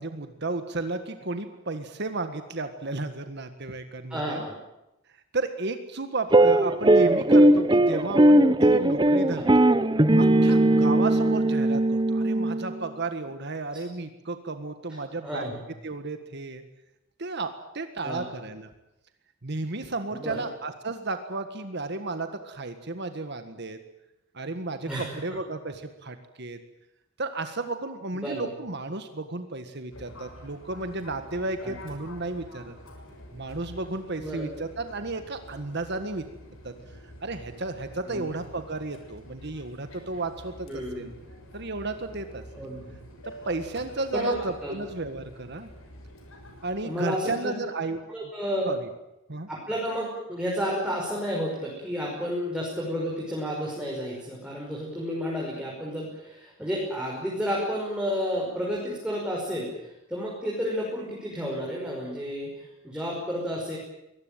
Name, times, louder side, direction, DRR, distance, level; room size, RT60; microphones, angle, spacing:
voice 1, 0.0-4.4 5.3-9.7 10.2-15.5 15.8-16.6 17.2-17.5 17.7-18.7 19.4-23.8 24.3-26.6 27.2-32.7 33.3-36.2 36.6-36.7 37.2-41.1 41.5-42.4 43.4-45.7 46.6-48.0 48.7-48.9 49.3-49.5, right 3 dB, 55° right, 8 dB, 1.7 m, -33 dB
voice 2, 4.1-4.5 9.4-9.5 15.2-15.6 18.0-18.2 20.1-20.5 24.9-25.1 28.1-28.5 31.6-31.7 34.2-34.5 38.1-38.3 40.7-41.1 42.5-42.8 44.1-44.3 44.6-44.7 46.8-47.5 48.1-48.7 49.5-63.8, equal, 5° right, -4 dB, 5.8 m, -31 dB
sound 1, 6.3-12.8, right 1 dB, 20° right, 0.8 m, -19 dB
Fixed-wing aircraft airplane, 29.9-46.8, equal, 90° left, 6.6 m, -47 dB
23.5 x 19.0 x 9.1 m, 0.91 s
head